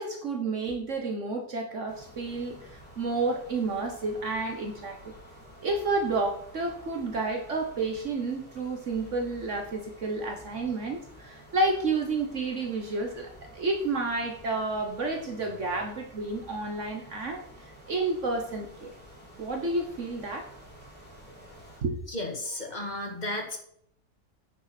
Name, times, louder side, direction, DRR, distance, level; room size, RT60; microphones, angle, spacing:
voice 1, 0.0-5.1 5.6-17.4 17.9-18.9 19.4-20.5 21.8-22.0, right 3 dB, 60° right, 3 dB, 1.5 m, -30 dB
sound 1, 1.9-21.8, equal, 5° left, 4.2 m, -51 dB
voice 2, 22.1-23.6, left 1 dB, 30° left, 2 dB, 2.1 m, -33 dB
9.5 x 6.8 x 5.9 m, 0.68 s
omnidirectional pair, 1.5 m